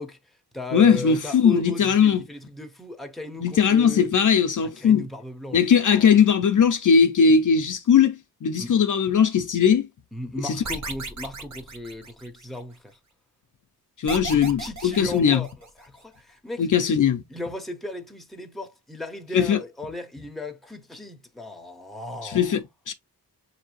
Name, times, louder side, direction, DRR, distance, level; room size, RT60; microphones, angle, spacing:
voice 1, 0.0-4.1 4.6-6.1 8.6-8.7 10.1-13.0 14.3-15.5 15.8-16.7 17.3-22.6, left 1 dB, ahead, 0.7 m, -36 dB
voice 2, 0.7-2.2 3.4-5.1 5.5-9.9 10.4-10.6 14.0-15.4 16.6-17.2 19.3-19.6 22.2-22.9, left 7 dB, 50° left, 0.5 m, -19 dB
sound 1, 10.6-12.6 14.1-15.9, right 3 dB, 45° right, 0.9 m, -35 dB
6.4 x 2.7 x 2.9 m
wide cardioid pair, 150°, 39 cm